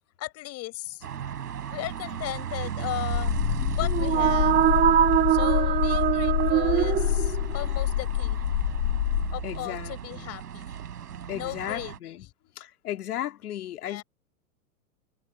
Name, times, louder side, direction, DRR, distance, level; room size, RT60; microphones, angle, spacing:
voice 1, 0.2-1.1 1.7-3.4 3.8-4.6 5.3-8.4 9.3-10.7 11.3-12.5 13.8-14.0, left 17 dB, 35° left, 7.9 m, -36 dB
sound 1, 1.0-12.0, right 9 dB, 85° right, 4.6 m, -36 dB
sound 2, 3.1-9.6, left 14 dB, 90° left, 0.7 m, -27 dB
sound 3, 3.8-7.6, right 12 dB, 20° right, 1.1 m, -23 dB
voice 2, 9.4-10.3 11.3-12.3 12.6-14.0, left 12 dB, 75° left, 2.6 m, -35 dB
hypercardioid pair, 135°, 46 cm